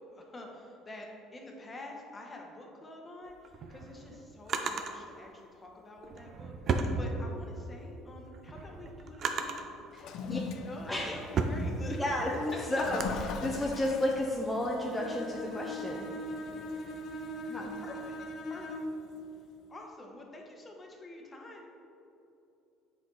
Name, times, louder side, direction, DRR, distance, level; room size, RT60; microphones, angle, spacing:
voice 1, 0.1-9.9 10.5-12.6 17.8-18.2 18.5-18.9 19.7-21.7, left 1 dB, 25° left, 1 dB, 1.0 m, -47 dB
Drawer open or close, 3.3-4.9 6.0-7.6 8.1-9.8 10.4-13.2, right 4 dB, 45° right, 0.5 m, -35 dB
Toilet flush, 9.9-19.2, left 6 dB, 65° left, 0.4 m, -43 dB
voice 2, 9.9-10.4 10.9-11.1 11.9-16.1 17.5-17.8, left 1 dB, 5° left, -3 dB, 0.6 m, -32 dB
Bowed string instrument, 15.0-19.1, left 1 dB, 45° left, 0.8 m, -40 dB
7.3 x 4.4 x 3.9 m, 2.8 s
cardioid pair, 110°, 0 cm